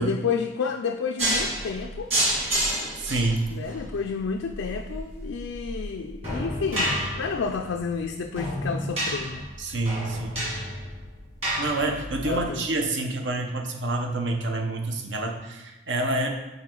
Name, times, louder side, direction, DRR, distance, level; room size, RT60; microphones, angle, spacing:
voice 1, 0.0-2.1 3.5-9.5 12.2-12.7, left 5 dB, 75° left, 4 dB, 0.4 m, -30 dB
sound 1, 1.2-12.4, right 1 dB, 30° right, 2.1 m, -30 dB
voice 2, 3.0-3.5 9.6-10.5 11.6-16.3, right 2 dB, 60° right, 3 dB, 0.9 m, -27 dB
5.6 x 4.4 x 4.5 m, 1.1 s
head